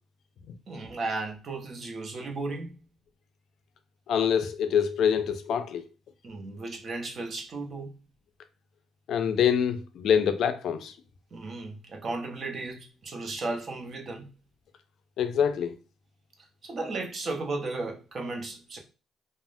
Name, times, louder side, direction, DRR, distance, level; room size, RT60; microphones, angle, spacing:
voice 1, 0.7-2.7 6.2-7.9 11.3-14.3 16.6-18.8, right 3 dB, 50° right, 0.7 m, -35 dB
voice 2, 4.1-5.8 9.1-10.9 15.2-15.7, left 8 dB, 75° left, 0.4 m, -25 dB
3.3 x 2.0 x 2.5 m
cardioid pair, 90°, 0 cm